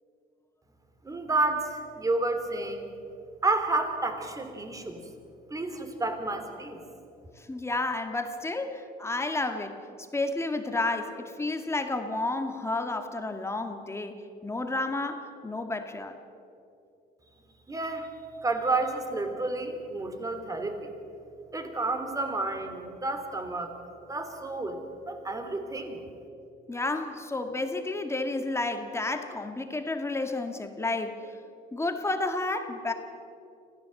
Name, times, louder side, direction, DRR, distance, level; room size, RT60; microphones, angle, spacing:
voice 1, 1.0-2.9 3.4-5.0 5.5-6.8 17.7-18.1 18.4-20.9 21.5-23.7 24.1-26.0, right 2 dB, 20° right, 6 dB, 3.2 m, -30 dB
voice 2, 7.4-9.8 10.1-16.1 26.7-31.3 31.7-32.9, left 2 dB, 15° left, 6 dB, 1.8 m, -31 dB
25.5 x 16.5 x 7.8 m, 2.7 s
cardioid pair, 110°, 17 cm